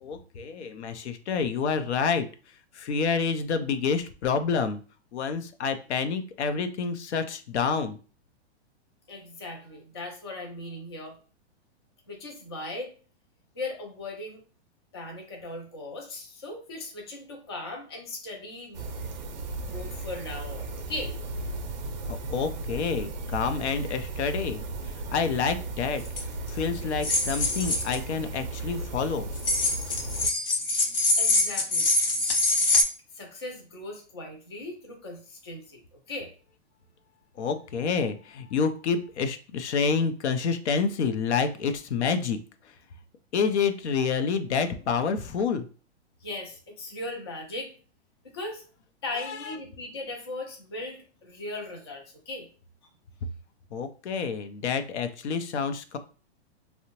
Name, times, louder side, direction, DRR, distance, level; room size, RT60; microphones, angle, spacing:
voice 1, 0.0-2.3 2.7-4.8 5.1-8.0 22.1-26.0 26.5-29.3 37.4-42.4 43.3-45.6 49.2-49.5 53.7-56.0, left 5 dB, 85° left, 9 dB, 0.6 m, -28 dB
voice 2, 9.1-11.2 12.1-12.9 13.6-14.4 14.9-18.9 19.7-21.1 31.2-31.9 33.1-36.3 46.2-47.7 48.2-48.6 49.0-52.5, left 2 dB, 25° left, 1 dB, 0.3 m, -38 dB
sound 1, 18.7-30.3, right 2 dB, 45° right, 0.5 m, -35 dB
sound 2, 26.1-26.2 27.0-28.0 29.4-32.8, left 2 dB, 55° left, 0.9 m, -24 dB
2.7 x 2.0 x 2.9 m, 0.37 s
hypercardioid pair, 170°, 33 cm